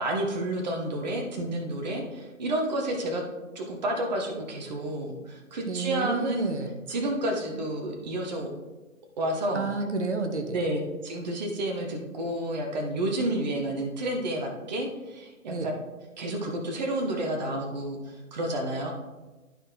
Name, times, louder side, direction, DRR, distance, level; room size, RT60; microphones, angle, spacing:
voice 1, 0.0-3.2 3.5-6.5 6.9-8.5 9.2-9.7 10.5-15.7 16.2-18.9, right 1 dB, 30° right, 2 dB, 1.0 m, -30 dB
voice 2, 5.7-6.8 9.5-10.6 15.5-15.7, right 3 dB, 55° right, 5 dB, 1.1 m, -30 dB
12.0 x 4.3 x 3.7 m, 1.2 s
figure-of-eight pair, 140°, 41 cm